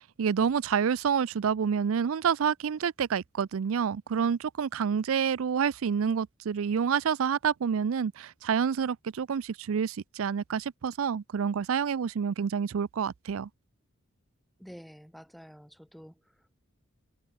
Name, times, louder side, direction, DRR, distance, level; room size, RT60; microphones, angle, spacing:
voice 1, 0.0-13.5, right 7 dB, 75° right, 0.4 m, -28 dB
voice 2, 14.6-16.6, equal, ahead, 3.3 m, -50 dB
head